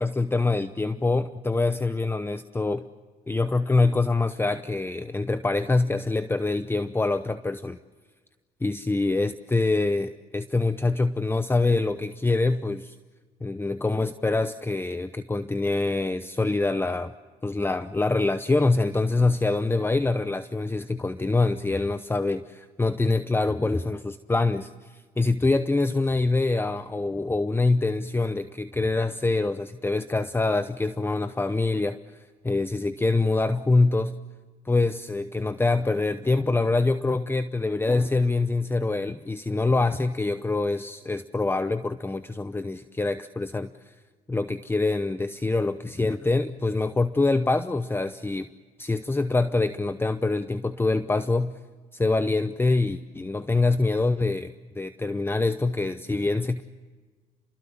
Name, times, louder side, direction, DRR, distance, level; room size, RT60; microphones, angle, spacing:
voice 1, 0.0-2.9 3.3-7.8 8.6-13.0 13.4-17.1 17.4-32.0 32.4-34.2 34.6-43.9 44.3-48.5 48.8-51.5 51.9-56.6, left 3 dB, 15° left, 12 dB, 0.8 m, -25 dB
29.0 x 21.5 x 7.5 m, 1.4 s
supercardioid pair, 70°, 16 cm